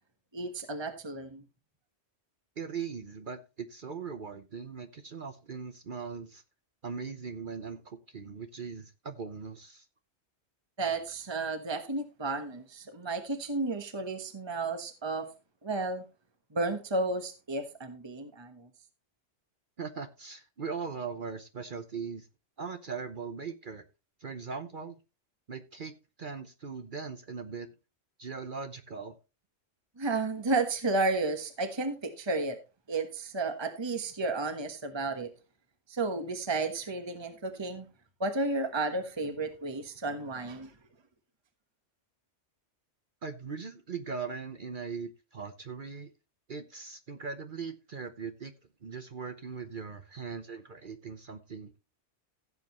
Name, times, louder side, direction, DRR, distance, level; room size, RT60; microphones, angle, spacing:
voice 1, 0.3-1.4 10.8-15.3 15.6-16.0 16.5-18.7 30.0-32.6 32.9-35.3 35.9-37.9 38.2-40.7, right 3 dB, 25° right, 7 dB, 1.3 m, -32 dB
voice 2, 2.6-6.4 6.8-9.9 19.8-22.3 22.6-23.8 24.2-25.0 25.5-25.9 26.2-27.7 28.2-29.1 43.2-46.1 46.5-48.5 48.8-51.8, right 5 dB, 50° right, 8 dB, 1.0 m, -40 dB
16.0 x 7.6 x 3.0 m, 0.29 s
omnidirectional pair, 1.2 m